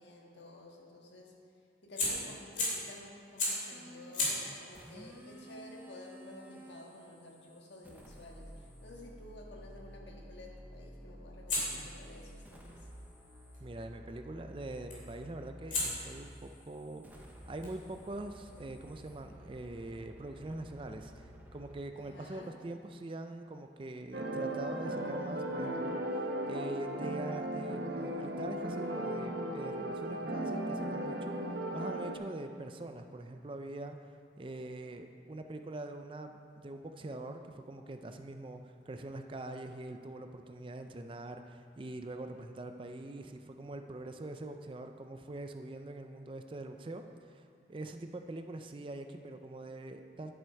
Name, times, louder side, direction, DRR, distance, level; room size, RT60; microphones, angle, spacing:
voice 1, 0.0-1.3 1.8-12.8 21.9-22.5, left 1 dB, 75° left, -1 dB, 1.6 m, -52 dB
Fire, 1.9-2.9 3.4-3.7 4.1-9.0 11.5-13.6 14.9-15.2 15.7-19.1, left 2 dB, 45° left, 2.6 m, -40 dB
sound 1, 3.7-4.2 4.7-6.9 7.8-16.4 17.0-21.8, equal, 10° right, 0.8 m, -52 dB
voice 2, 13.6-50.4, right 2 dB, 30° right, 6 dB, 0.4 m, -43 dB
sound 2, 24.1-32.2, right 1 dB, 65° right, 0.9 m, -36 dB
10.5 x 7.9 x 4.6 m, 2.4 s
head